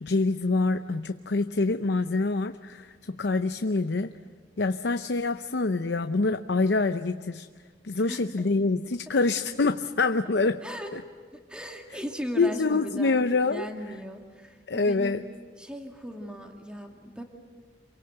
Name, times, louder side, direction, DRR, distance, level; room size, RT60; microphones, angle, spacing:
voice 1, 0.0-4.1 4.6-7.5 7.8-10.6 10.9-11.0 12.4-13.7 14.7-15.2, left 3 dB, 80° left, 9 dB, 0.7 m, -26 dB
voice 2, 11.3-15.2 15.6-17.2, equal, 5° right, 2 dB, 2.2 m, -38 dB
28.0 x 23.5 x 7.9 m, 1.5 s
head